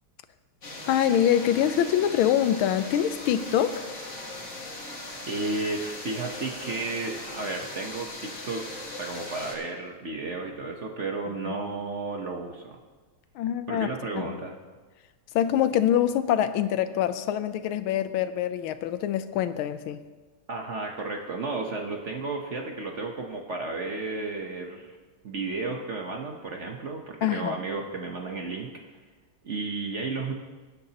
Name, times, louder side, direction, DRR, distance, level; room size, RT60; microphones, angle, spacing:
sound 1, 0.6-9.6, left 2 dB, 35° left, 2.1 m, -39 dB
voice 1, 0.9-3.9 11.5-11.6 13.4-13.9 14.3-14.4 15.3-20.0 27.2-27.6, left 10 dB, 80° left, 11 dB, 1.5 m, -25 dB
voice 2, 5.3-8.6 8.9-12.8 13.7-14.5 20.5-25.0 25.2-28.7 29.4-30.3, right 3 dB, 50° right, 1 dB, 0.9 m, -33 dB
20.0 x 9.8 x 2.9 m, 1.3 s
omnidirectional pair, 2.3 m